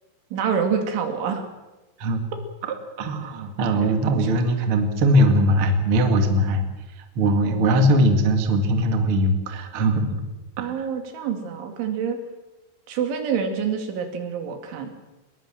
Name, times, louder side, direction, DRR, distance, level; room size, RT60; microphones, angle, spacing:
voice 1, 0.3-1.5 7.5-7.9 10.6-12.2 12.9-14.9, right 7 dB, 80° right, 5 dB, 4.9 m, -27 dB
voice 2, 3.0-6.7 7.2-10.1 10.6-10.7, right 1 dB, 40° right, 6 dB, 2.0 m, -20 dB
21.0 x 21.0 x 7.6 m, 1.1 s
omnidirectional pair, 5.4 m